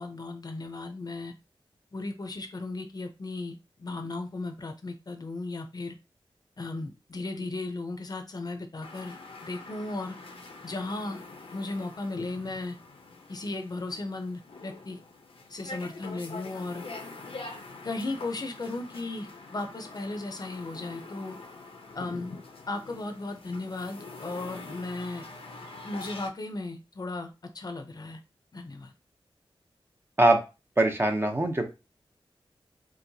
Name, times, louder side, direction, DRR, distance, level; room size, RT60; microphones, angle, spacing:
voice 1, 0.0-1.3 1.9-5.9 6.6-9.2 9.4-10.2 10.6-11.2 11.5-12.8 13.3-15.0 15.5-16.8 17.8-21.4 21.9-22.4 22.7-25.3 25.8-28.2 28.5-28.9, left 2 dB, 45° left, 0.6 m, -36 dB
sound 1, 8.8-26.3, left 3 dB, 80° left, 0.7 m, -45 dB
voice 2, 30.8-31.7, right 2 dB, 25° right, 0.7 m, -22 dB
4.5 x 2.0 x 2.7 m
wide cardioid pair, 85°, 9 cm